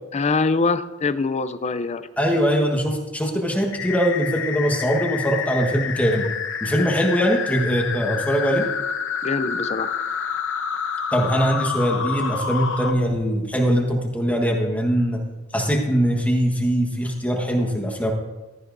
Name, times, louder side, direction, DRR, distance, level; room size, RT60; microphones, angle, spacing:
voice 1, 0.1-2.1 9.2-9.9, left 3 dB, 30° left, 13 dB, 0.5 m, -23 dB
voice 2, 2.2-6.3 6.6-8.7 11.1-15.2 15.5-18.1, equal, 5° left, 1 dB, 1.3 m, -21 dB
sound 1, 3.7-12.9, left 7 dB, 60° left, 0.9 m, -28 dB
15.0 x 12.5 x 2.6 m, 1.2 s
head